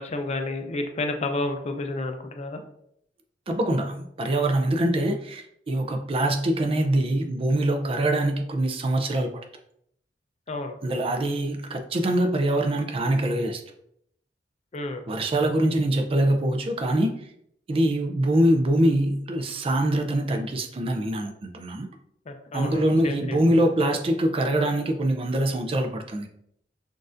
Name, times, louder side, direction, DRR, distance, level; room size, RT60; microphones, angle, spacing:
voice 1, 0.0-2.6 10.5-10.8 14.7-15.0 22.3-23.4, left 2 dB, 35° left, 6 dB, 0.4 m, -30 dB
voice 2, 3.5-9.3 10.8-13.6 15.1-17.1 17.7-21.9 22.5-26.3, right 1 dB, 30° right, 4 dB, 0.4 m, -24 dB
6.1 x 2.5 x 2.5 m, 0.72 s
head